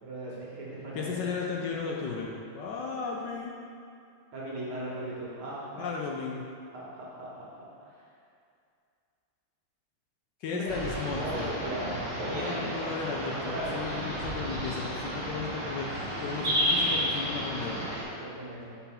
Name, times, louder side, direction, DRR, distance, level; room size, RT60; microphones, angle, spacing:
voice 1, 0.0-1.3 4.3-5.9 6.7-7.4 7.8-7.9 10.5-13.9 18.2-18.8, right 1 dB, 85° right, -6 dB, 2.4 m, -38 dB
voice 2, 0.9-3.5 5.8-6.4 10.4-11.5 12.3-17.8, left 5 dB, 70° left, -1 dB, 1.1 m, -35 dB
sound 1, 10.7-18.0, equal, 20° right, 1.5 m, -32 dB
5.7 x 4.2 x 5.6 m, 2.4 s
omnidirectional pair, 2.3 m